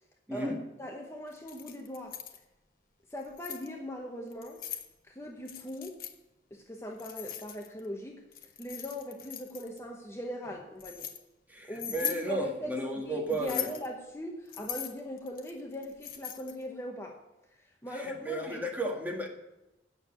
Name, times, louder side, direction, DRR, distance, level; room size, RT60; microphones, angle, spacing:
voice 1, 0.3-0.6 11.5-13.7 17.9-19.3, right 1 dB, 10° right, 1 dB, 1.6 m, -33 dB
voice 2, 0.8-2.2 3.1-4.6 5.0-6.0 6.5-8.2 8.6-11.1 11.7-17.2 17.6-18.7, left 1 dB, 15° left, 0 dB, 1.0 m, -40 dB
Keys jangling, 1.3-2.4 3.1-3.7 4.3-4.9 5.5-6.1 7.0-7.9 8.3-9.8 10.4-11.2 11.7-12.2 13.3-13.9 14.5-16.6, left 10 dB, 55° left, 1.0 m, -40 dB
8.9 x 6.6 x 8.5 m, 0.96 s
head